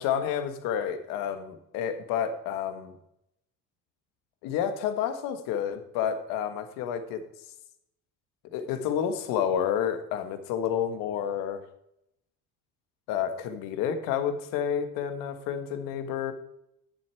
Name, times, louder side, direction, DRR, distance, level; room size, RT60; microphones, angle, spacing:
voice 1, 0.0-2.9 4.4-7.2 8.5-11.6 13.1-16.3, left 8 dB, 75° left, 9 dB, 1.5 m, -30 dB
11.5 x 7.1 x 4.5 m, 0.79 s
cardioid pair, 145°, 34 cm